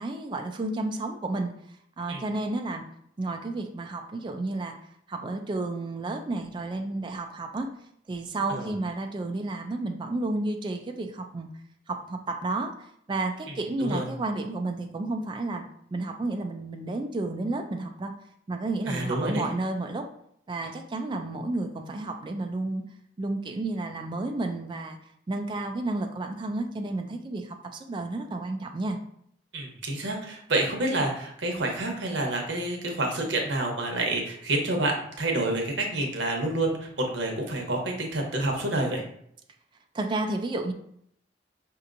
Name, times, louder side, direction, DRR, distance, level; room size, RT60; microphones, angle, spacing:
voice 1, 0.0-1.5 2.0-2.8 3.2-4.8 5.1-7.7 8.1-11.5 11.9-12.7 13.1-15.6 15.9-18.1 18.5-20.1 20.5-22.8 23.2-25.0 25.3-29.0 39.9-40.7, right 2 dB, 25° right, 4 dB, 0.3 m, -31 dB
voice 2, 18.9-19.4 29.5-39.0, right 2 dB, 85° right, 2 dB, 0.9 m, -28 dB
5.3 x 2.8 x 2.5 m, 0.70 s
head